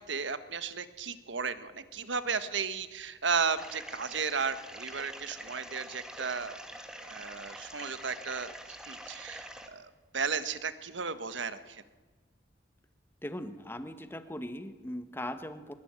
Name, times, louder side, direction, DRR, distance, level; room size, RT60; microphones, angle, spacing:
voice 1, 0.1-6.6 7.0-8.5 8.9-11.8, right 5 dB, 80° right, 12 dB, 1.6 m, -34 dB
sound 1, 3.6-9.7, equal, 5° right, 2.2 m, -46 dB
voice 2, 13.2-15.7, left 1 dB, 10° left, 10 dB, 1.5 m, -39 dB
22.5 x 22.0 x 9.1 m, 1.3 s
head